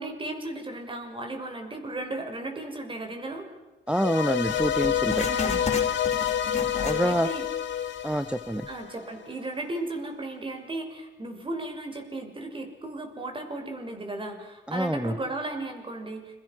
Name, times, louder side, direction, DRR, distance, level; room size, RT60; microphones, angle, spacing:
voice 1, 0.0-3.4 5.2-5.6 6.8-7.5 8.7-16.4, right 2 dB, 25° right, 4 dB, 6.4 m, -35 dB
sound 1, 3.9-9.1, left 9 dB, 70° left, 2.6 m, -28 dB
voice 2, 3.9-5.3 6.8-7.3 8.0-8.7 14.7-15.1, right 1 dB, 5° right, 11 dB, 1.0 m, -26 dB
Writing, 4.5-7.5 7.8-7.9 8.6-8.7, left 4 dB, 30° left, 5.4 m, -35 dB
29.5 x 24.0 x 6.3 m, 1.1 s
cardioid pair, 90°, 20 cm